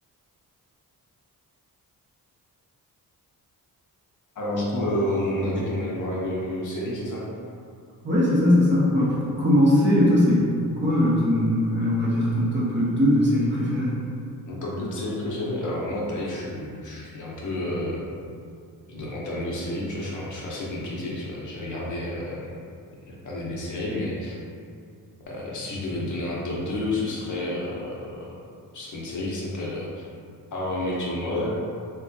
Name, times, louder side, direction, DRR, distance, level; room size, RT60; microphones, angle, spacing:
voice 1, 4.4-7.3 14.5-18.1 18.9-22.6 23.1-24.4 25.3-28.3 28.7-30.1 30.5-31.5, left 1 dB, 55° left, -5 dB, 0.6 m, -30 dB
voice 2, 8.0-10.5 10.8-13.9, left 1 dB, 30° right, -8 dB, 0.7 m, -20 dB
3.2 x 2.1 x 2.6 m, 2.4 s
wide cardioid pair, 140°, 36 cm